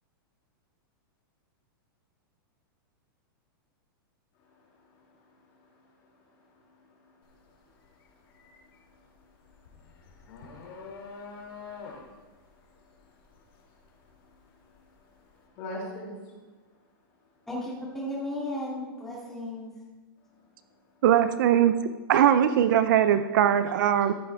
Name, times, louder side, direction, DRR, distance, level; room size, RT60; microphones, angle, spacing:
voice 1, 4.4-16.4 20.3-21.0 23.9-24.0, left 1 dB, 35° left, -2 dB, 2.9 m, -49 dB
sound 1, 7.2-7.5 7.9-14.9, left 4 dB, 80° left, 2.7 m, -46 dB
voice 2, 17.5-19.7, left 1 dB, 5° left, -5 dB, 2.6 m, -34 dB
voice 3, 21.0-21.8 22.1-24.1, right 10 dB, 55° right, 11 dB, 0.6 m, -21 dB
14.0 x 10.0 x 3.5 m, 1.2 s
supercardioid pair, 165°, 12 cm